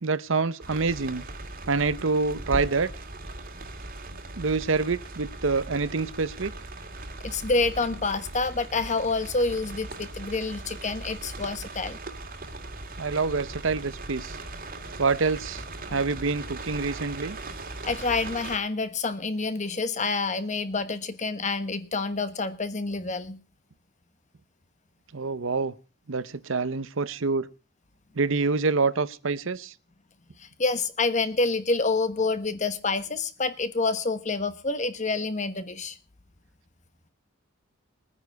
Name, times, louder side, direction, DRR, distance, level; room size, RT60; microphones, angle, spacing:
voice 1, 0.0-1.2 1.7-2.9 4.4-6.5 13.0-14.4 15.0-17.4 25.1-25.7 26.1-27.5 28.2-29.7, right 4 dB, 65° right, 16 dB, 0.8 m, -26 dB
sound 1, 0.6-18.6, right 2 dB, 45° right, 2.1 m, -39 dB
voice 2, 7.2-12.0 17.8-23.4 30.4-36.0, left 3 dB, 35° left, 12 dB, 1.2 m, -28 dB
21.5 x 9.8 x 4.7 m, 0.33 s
head